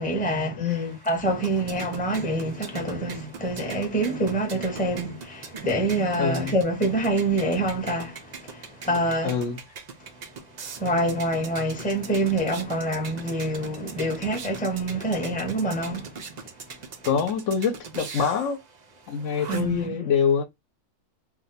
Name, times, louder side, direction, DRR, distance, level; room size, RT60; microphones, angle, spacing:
voice 1, 0.0-9.4 10.8-16.1 19.5-19.9, right 1 dB, 10° left, 0.7 m, -26 dB
voice 2, 0.6-1.0 6.2-6.6 9.2-9.6 17.0-18.6 19.1-20.4, left 7 dB, 70° left, 0.9 m, -25 dB
sound 1, 0.7-19.9, right 5 dB, 85° right, 0.3 m, -42 dB
2.6 x 2.2 x 3.9 m
omnidirectional pair, 1.4 m